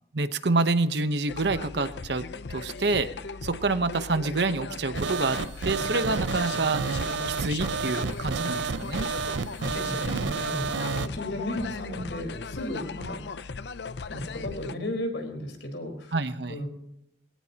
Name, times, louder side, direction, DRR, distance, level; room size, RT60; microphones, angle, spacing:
voice 1, 0.1-3.1 3.4-9.1 10.7-10.9 16.1-16.6, right 3 dB, 65° right, 11 dB, 1.0 m, -27 dB
sound 1, 1.3-14.7, left 4 dB, 65° left, 0.6 m, -38 dB
sound 2, 4.9-11.1, right 5 dB, 80° right, 0.6 m, -30 dB
voice 2, 9.6-10.7 11.0-13.2 14.1-16.1 16.5-16.7, left 1 dB, 85° left, 4 dB, 4.3 m, -34 dB
21.5 x 17.5 x 2.9 m, 0.81 s
head